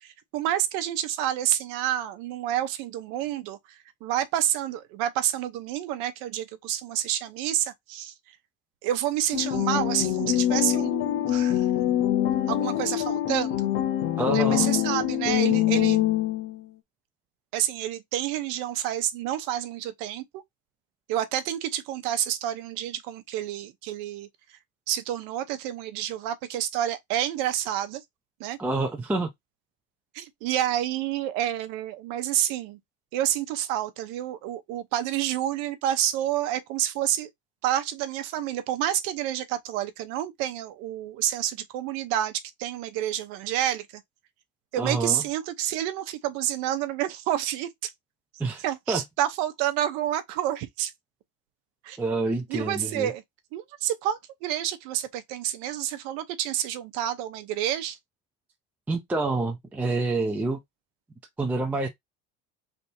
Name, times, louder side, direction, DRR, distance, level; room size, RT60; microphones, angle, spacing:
voice 1, 0.0-3.6 4.0-8.1 8.8-11.7 12.5-13.7 14.3-16.0 17.5-20.4 21.1-24.3 24.9-28.0 28.4-28.6 30.1-32.8 33.1-37.3 37.6-42.3 42.6-43.9 44.7-47.9 48.6-50.9 51.8-52.0 52.5-53.2 53.5-58.0, right 12 dB, 80° right, 0.8 m, -29 dB
sound 1, 9.3-16.6, left 12 dB, 45° left, 0.5 m, -24 dB
voice 2, 14.2-14.7 28.6-29.3 44.8-45.2 48.4-49.0 52.0-53.1 58.9-60.6 61.4-61.9, right 3 dB, 5° right, 0.4 m, -27 dB
3.4 x 2.7 x 4.1 m
cardioid pair, 160°, 31 cm